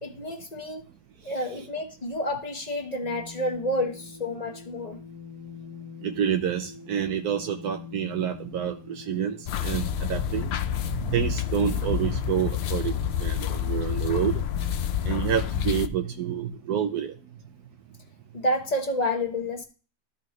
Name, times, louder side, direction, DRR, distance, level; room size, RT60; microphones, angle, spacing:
voice 1, 0.0-0.9 1.2-5.0 18.3-19.6, left 1 dB, 30° left, 1.2 m, -29 dB
sound 1, 3.0-15.3, left 6 dB, 90° left, 1.4 m, -45 dB
voice 2, 6.0-14.4 15.0-17.1, right 9 dB, 85° right, 1.3 m, -28 dB
sound 2, 9.5-15.9, left 10 dB, 70° left, 0.6 m, -28 dB
13.5 x 4.9 x 3.0 m
omnidirectional pair, 1.6 m